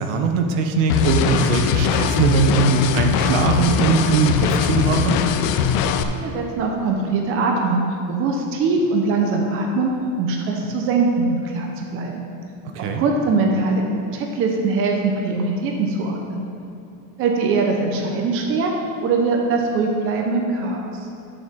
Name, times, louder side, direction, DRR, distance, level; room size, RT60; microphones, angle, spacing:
voice 1, 0.0-5.2 12.7-13.0, right 5 dB, 60° right, 4 dB, 0.9 m, -20 dB
sound 1, 0.9-6.0, left 7 dB, 50° left, 0.5 m, -20 dB
voice 2, 6.1-7.8 8.1-9.9 10.2-12.2 12.8-13.8 14.1-16.4 17.2-18.7 19.0-20.9, right 3 dB, 35° right, 1 dB, 0.8 m, -22 dB
10.5 x 6.9 x 3.7 m, 2.7 s
cardioid pair, 175°, 39 cm